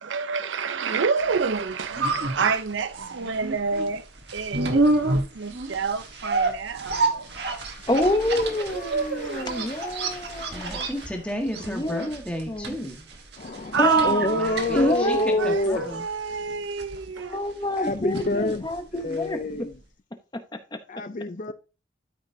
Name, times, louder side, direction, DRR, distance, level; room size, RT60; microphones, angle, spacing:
voice 1, 0.0-7.3 8.6-9.7 13.7-17.4, right 5 dB, 80° right, 0.6 m, -28 dB
sound 1, 1.4-19.4 19.7-19.8, right 2 dB, 60° right, 1.4 m, -30 dB
voice 2, 7.9-10.8 11.7-12.7 13.8-14.2 14.7-15.5 17.2-19.7 20.7-20.8, left 1 dB, 20° left, 0.8 m, -27 dB
voice 3, 8.7-9.0 9.5-10.9 13.4-15.9 17.8-18.6 19.0-19.7 20.9-21.5, left 2 dB, 40° left, 0.5 m, -28 dB
voice 4, 10.5-13.1 14.2-16.0, equal, 5° left, 1.5 m, -33 dB
13.0 x 5.2 x 2.7 m
head